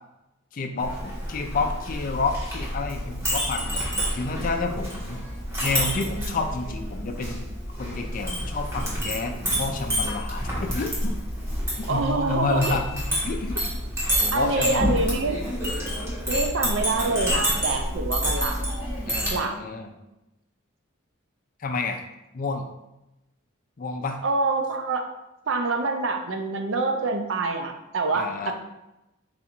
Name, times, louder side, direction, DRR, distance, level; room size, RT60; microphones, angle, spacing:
voice 1, 0.5-5.2 5.6-7.5 7.8-11.2 11.8-13.5 14.2-15.0 19.1-19.9 21.6-22.0 22.3-22.7 23.8-24.2 28.1-28.5, left 3 dB, 40° left, 5 dB, 0.4 m, -30 dB
Chink clink, 0.8-19.4, equal, 15° right, 1.1 m, -28 dB
voice 2, 11.9-12.8 14.3-15.4 16.3-18.6 19.3-19.5 24.2-25.0 25.5-28.2, right 3 dB, 60° right, 5 dB, 0.5 m, -26 dB
4.0 x 2.5 x 4.3 m, 0.93 s
head